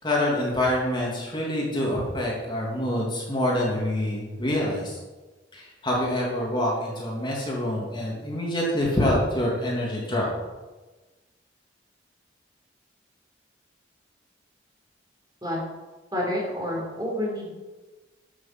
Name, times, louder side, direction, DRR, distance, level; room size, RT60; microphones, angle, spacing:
voice 1, 0.0-5.0 5.5-10.3, left 1 dB, 25° left, -4 dB, 3.0 m, -26 dB
voice 2, 16.1-17.5, left 1 dB, 20° right, -3 dB, 4.1 m, -28 dB
11.5 x 7.2 x 7.7 m, 1.2 s
head